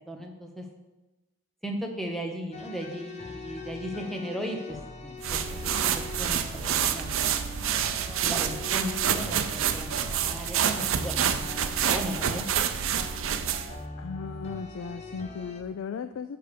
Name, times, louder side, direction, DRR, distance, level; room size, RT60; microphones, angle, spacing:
voice 1, 0.1-0.7 1.6-11.2 11.6-12.5, equal, ahead, 2 dB, 0.9 m, -37 dB
sound 1, 2.5-15.6, left 3 dB, 30° left, 0.8 m, -42 dB
sound 2, 5.2-13.8, right 8 dB, 70° right, 0.5 m, -28 dB
voice 2, 14.0-16.4, left 5 dB, 70° left, 10 dB, 0.3 m, -36 dB
10.0 x 3.4 x 6.7 m, 1.1 s
head